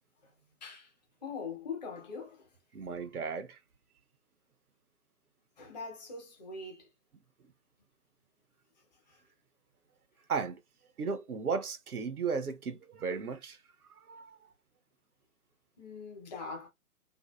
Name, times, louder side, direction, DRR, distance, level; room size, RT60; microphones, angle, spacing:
voice 1, 1.2-2.5 5.6-6.9 9.1-9.2 15.8-16.7, left 4 dB, 30° left, 0.9 m, -42 dB
voice 2, 2.7-3.6 10.3-10.6 11.0-13.6 14.1-14.4, right 5 dB, 85° right, 0.7 m, -35 dB
2.6 x 2.4 x 2.2 m
figure-of-eight pair, 135°, 43 cm